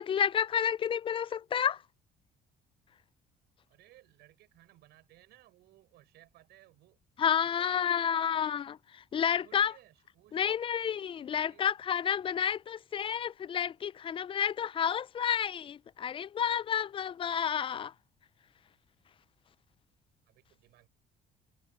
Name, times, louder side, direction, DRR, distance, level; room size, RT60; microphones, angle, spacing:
voice 1, 0.0-1.8 7.2-8.7 9.1-9.7 10.3-17.9, left 8 dB, 30° left, 0.3 m, -30 dB
voice 2, 3.7-7.0 7.4-8.5 9.1-10.6 11.3-11.7 20.3-20.9, right 16 dB, 80° right, 5.0 m, -60 dB
cardioid pair, 110°, 17 cm